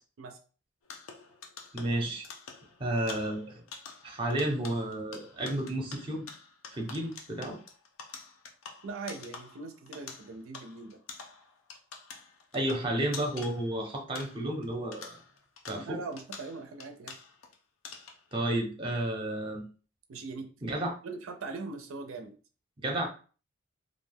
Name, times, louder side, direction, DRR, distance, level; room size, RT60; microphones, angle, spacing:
sound 1, 0.8-14.7 14.9-17.5 17.8-18.3, left 5 dB, 85° left, 0.5 m, -48 dB
voice 1, 1.7-2.3 2.8-3.6 4.0-6.3 6.7-7.6 12.5-15.2 15.7-16.0 18.3-19.6 20.6-20.9 22.8-23.1, right 1 dB, 25° right, 1 dB, 0.6 m, -32 dB
voice 2, 8.8-11.0 15.7-17.2 20.1-20.5 21.0-22.3, right 4 dB, 80° right, 5 dB, 0.4 m, -41 dB
2.5 x 2.2 x 3.3 m, 0.38 s
head